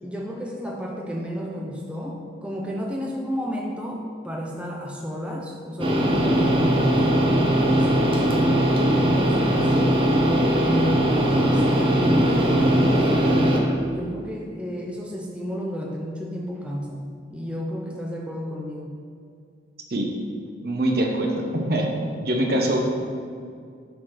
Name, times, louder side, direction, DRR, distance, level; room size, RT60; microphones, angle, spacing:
voice 1, 0.0-8.4 8.9-9.7 10.2-11.2 11.5-13.4 13.8-18.9, equal, 5° right, -2 dB, 0.6 m, -32 dB
sound 1, 5.8-13.6, equal, 30° right, 0.9 m, -20 dB
voice 2, 20.6-21.9 22.2-22.8, right 1 dB, 55° right, 1 dB, 0.9 m, -23 dB
7.7 x 4.2 x 5.8 m, 2.2 s
head